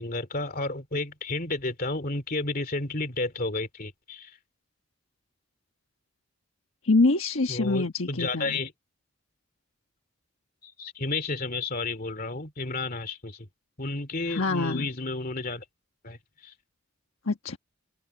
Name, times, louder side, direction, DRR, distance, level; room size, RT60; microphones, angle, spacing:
voice 1, 0.0-4.4 7.5-8.7 10.6-13.5 13.8-15.6 16.0-16.5, left 3 dB, 40° left, 2.6 m, -32 dB
voice 2, 6.8-8.6 14.3-14.9 17.2-17.6, left 3 dB, 65° left, 1.4 m, -25 dB
open air
head